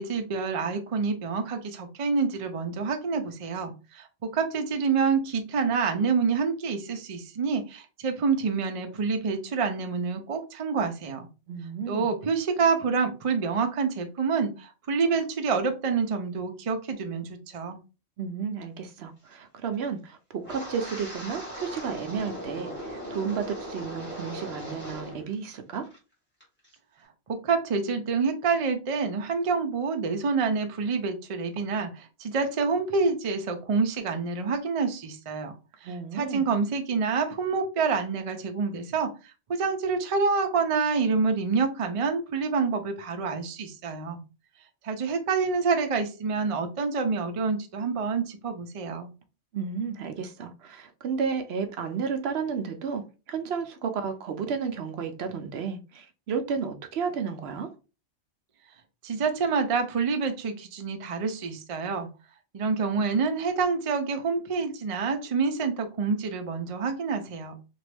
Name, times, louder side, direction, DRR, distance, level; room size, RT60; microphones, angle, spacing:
voice 1, 0.0-11.3 11.9-17.8 27.3-35.5 35.8-39.1 39.5-44.2 44.8-49.1 59.0-62.1 62.5-67.6, right 5 dB, 50° right, 0.4 m, -27 dB
voice 2, 11.5-12.1 18.2-25.9 35.8-36.5 49.5-57.7, right 6 dB, 70° right, 0.8 m, -32 dB
Wind, 20.4-25.3 25.5-26.0 26.4-26.7, equal, 10° left, 1.4 m, -38 dB
3.0 x 2.5 x 3.3 m
omnidirectional pair, 1.2 m